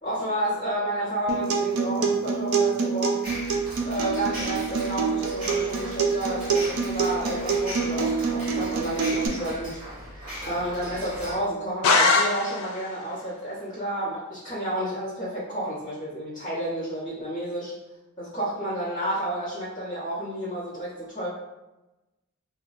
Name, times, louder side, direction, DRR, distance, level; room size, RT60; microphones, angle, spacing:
voice 1, 0.0-3.3 3.8-9.8 10.2-17.7 18.2-21.3, right 1 dB, 20° left, -13 dB, 0.9 m, -31 dB
Acoustic guitar, 1.3-9.3, right 5 dB, 75° right, 0.4 m, -26 dB
sound 1, 3.2-11.4, equal, 45° right, 1.2 m, -38 dB
sound 2, 11.8-12.9, left 4 dB, 90° left, 0.4 m, -21 dB
2.8 x 2.1 x 2.5 m, 1.0 s
head